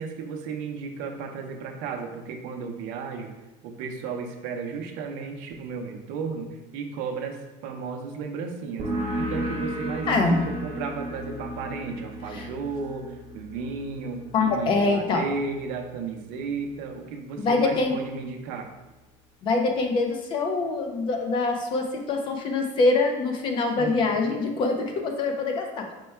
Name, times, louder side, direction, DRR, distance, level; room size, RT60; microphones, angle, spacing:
voice 1, 0.0-3.3 3.6-8.9 9.2-18.7 23.8-23.9 24.3-24.4, right 5 dB, 55° right, 3 dB, 0.6 m, -34 dB
sound 1, 8.8-16.1, equal, 40° right, 1.0 m, -34 dB
voice 2, 10.1-10.4 12.3-12.5 14.3-15.2 17.4-18.0 19.4-25.9, left 3 dB, 30° left, 4 dB, 0.4 m, -24 dB
4.5 x 2.2 x 4.4 m, 1.1 s
cardioid pair, 165°, 16 cm